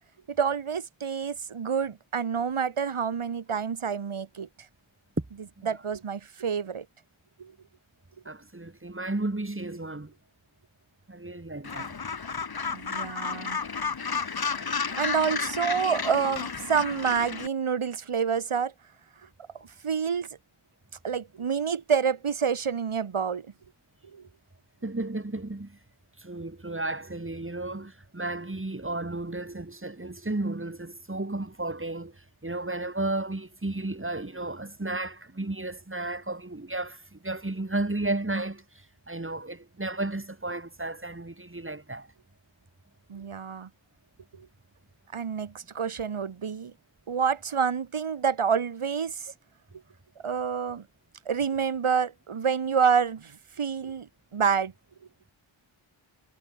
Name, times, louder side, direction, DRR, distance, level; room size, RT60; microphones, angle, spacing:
voice 1, 0.3-4.5 5.7-6.8 7.4-7.5 12.7-13.6 14.8-18.7 19.8-20.3 21.0-23.5 24.1-24.2 43.1-43.7 45.1-46.7 47.1-49.3 50.2-50.8 51.3-54.1 54.3-54.7, right 6 dB, 85° right, 2.4 m, -28 dB
voice 2, 8.2-10.1 11.1-11.9 24.8-25.8 26.2-42.1, right 2 dB, 25° right, 5.9 m, -33 dB
Gull seagull, 11.6-17.5, left 5 dB, 50° left, 1.6 m, -32 dB
wide cardioid pair, 70°, 49 cm